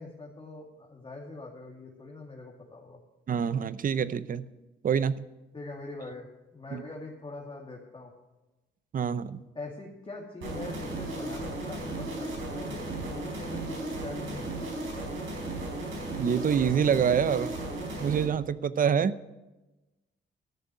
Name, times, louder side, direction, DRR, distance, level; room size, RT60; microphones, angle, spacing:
voice 1, 0.0-3.0 5.5-6.3 6.5-8.1 9.5-14.9, left 2 dB, 25° left, -2 dB, 2.4 m, -43 dB
voice 2, 3.3-4.5 4.8-5.3 6.7-6.8 8.9-9.4 16.2-17.6 18.0-19.2, right 7 dB, 45° right, 16 dB, 0.7 m, -26 dB
sound 1, 10.4-18.2, right 2 dB, 80° right, 4.4 m, -35 dB
13.0 x 6.6 x 9.2 m, 1.1 s
cardioid pair, 90°, 20 cm